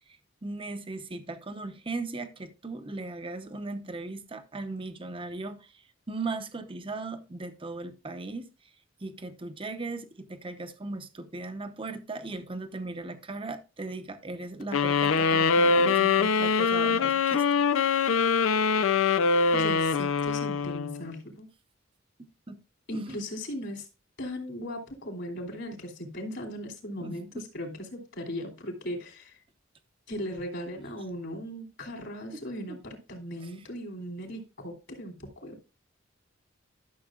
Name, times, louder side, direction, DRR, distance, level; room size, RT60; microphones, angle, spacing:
voice 1, 0.4-5.7 6.1-8.5 9.0-17.6 22.2-22.6 22.9-23.2 27.0-27.4 32.7-32.8 33.4-33.5, right 3 dB, 25° right, 0.8 m, -38 dB
sound 1, 14.7-21.1, left 5 dB, 80° left, 0.5 m, -24 dB
voice 2, 19.5-21.5 22.9-23.9 24.2-29.4 30.1-35.7, equal, 65° left, 2.8 m, -38 dB
12.5 x 6.7 x 2.4 m
head